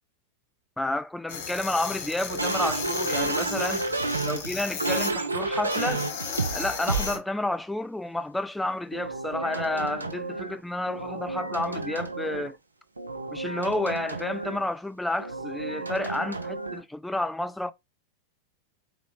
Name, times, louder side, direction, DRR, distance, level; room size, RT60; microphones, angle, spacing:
voice 1, 0.8-3.9 4.2-6.1 6.5-12.6 13.3-17.7, left 1 dB, 5° left, 0.3 m, -30 dB
sound 1, 1.3-5.1 5.7-7.2, left 6 dB, 50° left, 1.0 m, -35 dB
sound 2, 2.3-7.2 8.9-10.6 10.9-12.6 13.0-14.7 15.2-16.8, right 3 dB, 80° right, 0.5 m, -31 dB
4.0 x 2.9 x 3.0 m
figure-of-eight pair, 90°, 0 cm